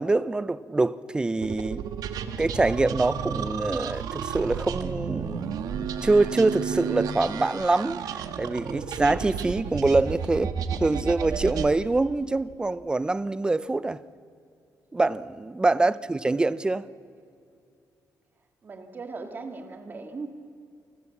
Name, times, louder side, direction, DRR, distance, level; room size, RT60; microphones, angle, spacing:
voice 1, 0.0-1.8 2.4-10.5 10.8-14.0 14.9-16.8, right 2 dB, 15° right, 0.5 m, -25 dB
sound 1, 1.4-11.7, right 7 dB, 75° right, 1.5 m, -32 dB
voice 2, 18.6-20.3, right 4 dB, 30° right, 2.3 m, -38 dB
29.0 x 24.5 x 7.2 m
cardioid pair, 170°, 7 cm